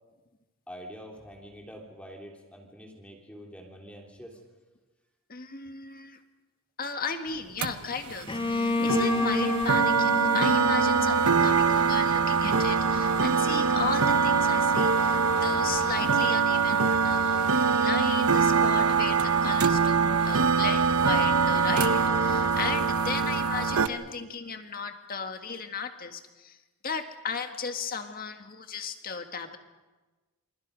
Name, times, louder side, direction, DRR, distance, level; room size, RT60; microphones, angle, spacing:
voice 1, 0.7-4.4, equal, 5° left, 0 dB, 3.3 m, -45 dB
voice 2, 5.3-6.2 6.8-26.6 26.8-29.6, left 5 dB, 40° left, 6 dB, 1.8 m, -35 dB
sound 1, 7.6-23.9, right 5 dB, 85° right, 1.1 m, -24 dB
Bowed string instrument, 8.3-12.0, left 2 dB, 25° left, 1.0 m, -30 dB
28.0 x 27.0 x 5.3 m, 1.2 s
head